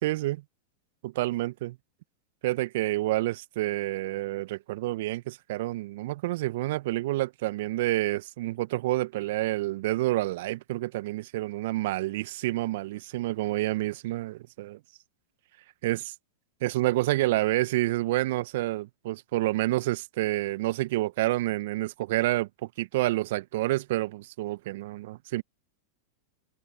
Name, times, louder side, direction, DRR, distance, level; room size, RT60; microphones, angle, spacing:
voice 1, 0.0-0.4 1.0-1.8 2.4-14.8 15.8-16.1 16.6-25.4, right 17 dB, 60° right, 1.6 m, -28 dB
figure-of-eight pair, 95°, 0 cm